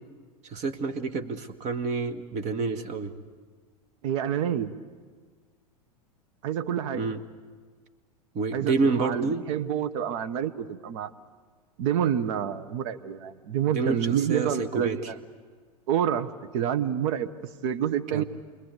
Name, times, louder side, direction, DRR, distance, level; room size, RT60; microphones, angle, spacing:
voice 1, 0.4-3.1 6.9-7.2 8.3-9.4 13.7-15.0 18.1-18.2, right 4 dB, 35° right, 9 dB, 1.7 m, -28 dB
voice 2, 4.0-4.7 6.4-7.1 8.5-11.1 11.8-15.2 15.9-17.3 17.6-18.2, right 9 dB, 55° right, 11 dB, 1.2 m, -28 dB
29.0 x 21.5 x 8.4 m, 1.5 s
figure-of-eight pair, 95°, 20 cm